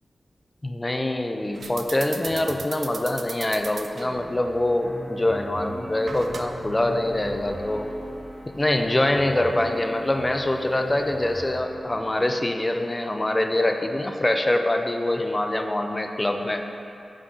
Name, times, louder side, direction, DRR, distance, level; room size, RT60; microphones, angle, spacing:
voice 1, 0.6-7.9 8.5-16.6, left 1 dB, 20° left, 5 dB, 0.3 m, -24 dB
sound 1, 1.5-11.6, right 4 dB, 65° right, 0.3 m, -41 dB
sound 2, 4.0-12.2, equal, 5° right, 1.0 m, -45 dB
sound 3, 4.4-11.9, equal, 45° right, 1.0 m, -40 dB
8.2 x 3.9 x 3.7 m, 2.6 s
wide cardioid pair, 120°, 0 cm